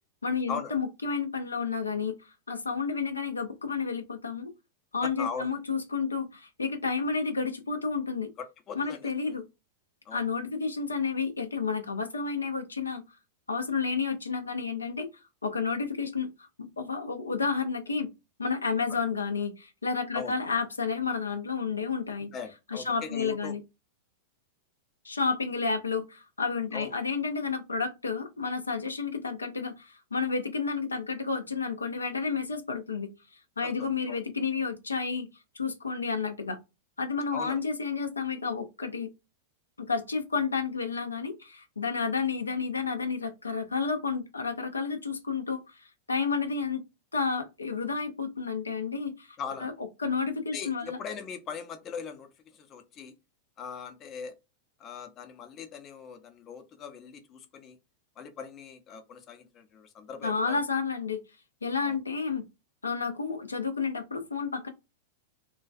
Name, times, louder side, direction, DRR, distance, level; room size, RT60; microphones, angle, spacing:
voice 1, 0.2-2.2 2.5-4.5 4.9-8.3 8.8-9.4 10.1-13.0 13.5-15.1 15.4-18.1 18.4-22.3 22.7-23.6 25.0-33.1 33.6-35.3 35.5-36.6 37.0-39.1 39.8-46.8 47.1-49.7 50.0-51.0 60.2-61.2 61.6-62.4 62.8-64.7, left 5 dB, 90° left, 0.4 m, -31 dB
voice 2, 5.0-5.5 8.7-9.4 10.1-10.2 20.1-20.3 22.2-23.5 26.7-26.9 33.6-34.2 37.3-37.6 49.4-49.7 50.5-53.1 53.6-54.3 54.8-57.8 58.2-60.6 61.8-62.0, left 6 dB, 35° left, 0.5 m, -40 dB
2.3 x 2.2 x 2.4 m
hypercardioid pair, 100°, 0 cm